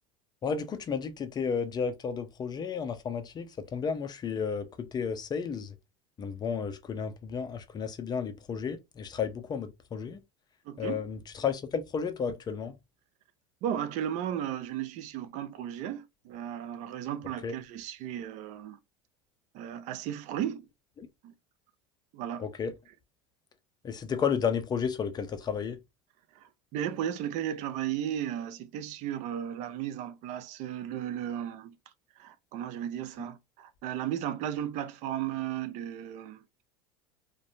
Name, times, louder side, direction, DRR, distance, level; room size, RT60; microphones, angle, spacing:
voice 1, 0.4-5.7 6.2-10.2 10.8-12.7 17.4-17.5 21.0-21.1 22.4-22.7 23.8-25.8, left 6 dB, 30° left, 0.5 m, -32 dB
voice 2, 10.7-11.0 13.6-18.8 19.5-20.7 21.2-21.3 22.1-22.5 26.3-31.8 32.2-36.4, right 10 dB, 55° right, 0.4 m, -35 dB
2.6 x 2.2 x 2.5 m
supercardioid pair, 100°, 15 cm